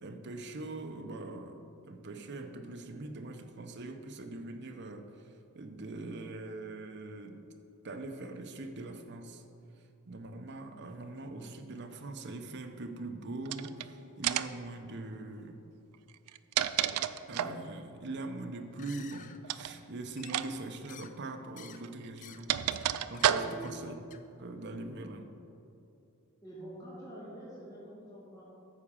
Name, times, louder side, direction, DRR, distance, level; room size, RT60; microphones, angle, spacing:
voice 1, 0.0-5.2 5.5-7.4 7.8-9.4 10.1-15.6 17.3-24.0 24.4-25.3, right 2 dB, 50° right, 6 dB, 0.7 m, -42 dB
sound 1, 13.4-13.8 14.2-14.6 16.1-17.6 19.4-19.7 20.2-20.5 20.7-20.9 21.8-23.8, right 10 dB, 85° right, 0.4 m, -31 dB
sound 2, 18.7-19.4 20.2-20.6 20.9-21.2 21.6-21.8 22.1-22.4 22.7-22.9 23.1-23.3 23.6-23.8 24.1-24.2, left 8 dB, 35° left, 0.4 m, -51 dB
voice 2, 23.4-23.8 24.7-24.8 26.4-28.4, right 1 dB, 15° left, -10 dB, 2.4 m, -46 dB
9.7 x 4.9 x 7.2 m, 2.7 s
head